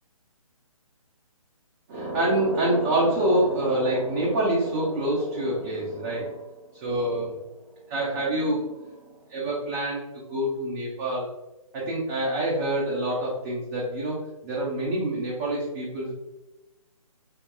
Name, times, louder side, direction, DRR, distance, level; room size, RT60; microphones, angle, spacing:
voice 1, 1.9-7.4 7.9-11.3 11.7-14.2 14.4-16.1, right 1 dB, 25° right, -6 dB, 0.8 m, -26 dB
5.4 x 2.2 x 2.3 m, 1.0 s
figure-of-eight pair, 140°, 18 cm